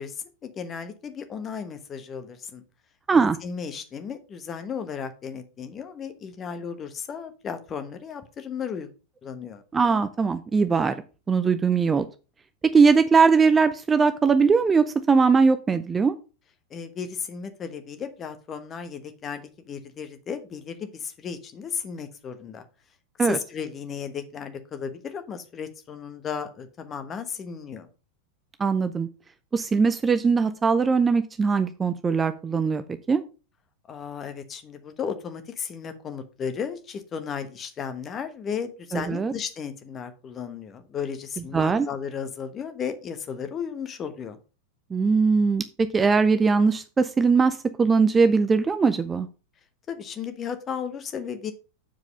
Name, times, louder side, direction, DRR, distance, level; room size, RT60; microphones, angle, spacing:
voice 1, 0.0-2.6 3.1-8.9 9.2-9.6 16.7-22.6 23.2-27.9 33.9-44.4 49.9-51.5, left 7 dB, 25° left, 9 dB, 1.2 m, -34 dB
voice 2, 9.7-10.9 11.3-12.1 12.6-16.1 23.2-23.4 28.6-29.1 29.5-32.8 33.1-33.2 38.9-39.3 41.5-41.9 44.9-49.3, right 5 dB, 15° right, 11 dB, 0.5 m, -20 dB
7.5 x 4.8 x 5.3 m, 0.33 s
figure-of-eight pair, 90°, 0 cm